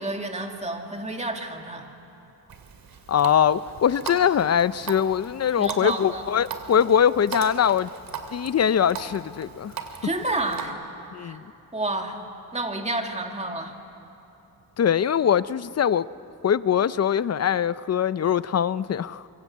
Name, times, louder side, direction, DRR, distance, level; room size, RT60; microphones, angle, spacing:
voice 1, 0.0-1.9 5.6-6.2 10.0-10.8 11.2-11.4 11.7-12.2 12.5-13.7, right 2 dB, 15° right, 3 dB, 2.2 m, -30 dB
Water tap faucet, 2.5-10.7, right 6 dB, 65° right, 2.4 m, -39 dB
voice 2, 3.1-7.9 8.3-9.7 11.1-11.4 14.8-16.1 16.4-19.2, left 8 dB, 40° left, 16 dB, 0.6 m, -22 dB
25.0 x 23.5 x 8.4 m, 2.9 s
wide cardioid pair, 120°, 38 cm